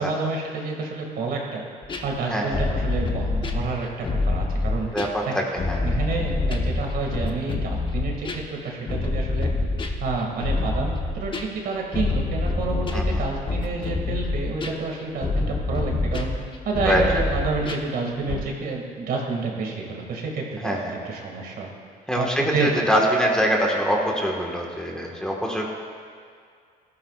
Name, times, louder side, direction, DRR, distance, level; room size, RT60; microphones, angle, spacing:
voice 1, 0.0-1.6 2.0-4.9 5.3-5.4 5.8-9.5 10.0-16.3 16.7-21.7 22.2-22.9, right 4 dB, 60° right, 0 dB, 2.2 m, -29 dB
sound 1, 1.8-5.2 5.6-18.4, left 3 dB, 30° left, 1.1 m, -26 dB
voice 2, 2.2-2.6 4.9-5.8 12.9-13.2 16.8-17.0 20.6-20.9 22.1-25.7, equal, 5° left, -1 dB, 1.6 m, -24 dB
17.0 x 13.5 x 2.5 m, 2.1 s
cardioid pair, 110°, 17 cm